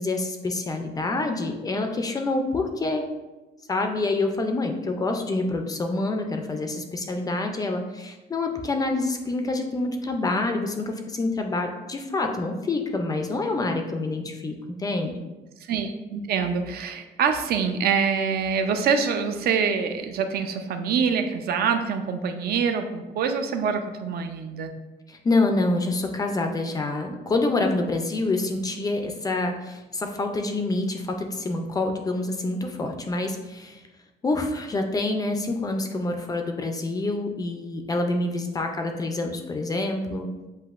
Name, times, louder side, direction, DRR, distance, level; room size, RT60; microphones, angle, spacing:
voice 1, 0.0-3.0 3.7-15.2 25.1-33.8 34.2-40.3, left 2 dB, 20° left, 4 dB, 0.3 m, -27 dB
voice 2, 15.6-24.7, right 6 dB, 60° right, 6 dB, 0.4 m, -25 dB
7.7 x 2.8 x 2.4 m, 1.1 s
cardioid pair, 180°, 18 cm